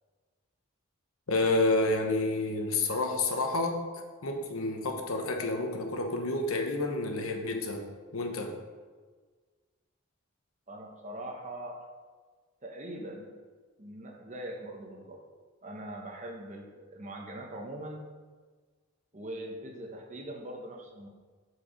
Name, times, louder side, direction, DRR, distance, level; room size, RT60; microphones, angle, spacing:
voice 1, 1.3-7.8 8.1-8.6, left 2 dB, 80° left, 3 dB, 1.0 m, -29 dB
voice 2, 10.7-11.9 12.6-13.3 13.8-15.2 15.6-18.0 19.1-21.1, right 1 dB, 35° right, 2 dB, 0.9 m, -41 dB
7.6 x 4.7 x 5.0 m, 1.4 s
head